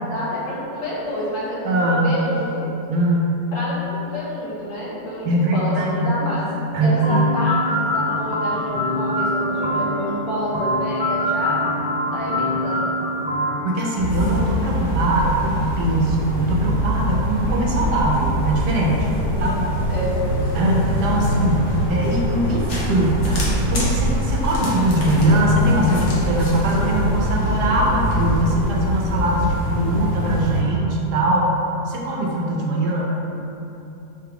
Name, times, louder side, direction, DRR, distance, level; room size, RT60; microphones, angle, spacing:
voice 1, 0.0-2.7 3.5-5.3 5.5-11.6 12.1-12.9 19.2-19.6 19.9-20.2, equal, 70° left, -7 dB, 1.4 m, -28 dB
voice 2, 1.6-2.2 2.9-3.3 5.2-6.1 6.7-7.2 13.6-19.1 19.4-19.8 20.5-31.5 31.9-33.2, right 1 dB, 80° right, -2 dB, 1.2 m, -21 dB
sound 1, 7.0-14.9, left 1 dB, 30° right, 0.4 m, -24 dB
sound 2, 14.0-30.6, equal, 55° left, 0.9 m, -23 dB
5.0 x 2.3 x 3.4 m, 2.9 s
omnidirectional pair, 1.8 m